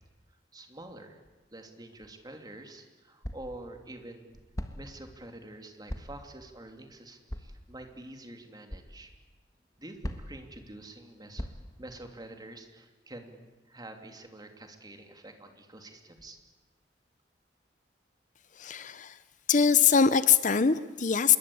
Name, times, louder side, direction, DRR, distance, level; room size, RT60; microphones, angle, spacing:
voice 1, 0.5-1.2 1.5-4.3 4.8-9.1 9.8-11.5 11.8-16.4, right 1 dB, 25° right, 5 dB, 2.9 m, -47 dB
sound 1, 2.1-2.2 3.2-3.6 4.5-5.0 5.9-6.3 7.3-7.6 8.7-8.9 10.0-10.5 11.4-11.8, equal, 20° left, 1.6 m, -38 dB
voice 2, 18.6-19.2 19.5-21.4, left 6 dB, 45° left, 14 dB, 0.8 m, -23 dB
27.0 x 22.0 x 8.6 m, 1.2 s
head